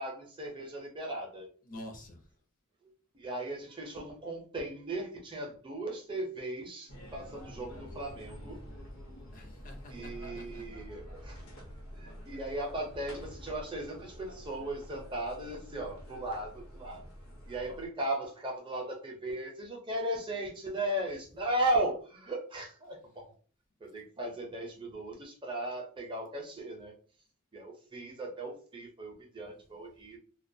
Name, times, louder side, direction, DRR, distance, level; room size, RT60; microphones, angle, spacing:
voice 1, 0.0-1.5 3.1-8.6 9.9-11.4 12.0-17.0 17.5-23.2 23.8-26.9 27.5-30.2, right 1 dB, 20° right, 0.5 m, -37 dB
voice 2, 1.6-2.3 9.3-10.6 29.5-29.6, left 1 dB, 40° left, 0.6 m, -48 dB
sound 1, 6.9-17.9, equal, 70° left, 0.8 m, -48 dB
2.2 x 2.2 x 2.6 m
head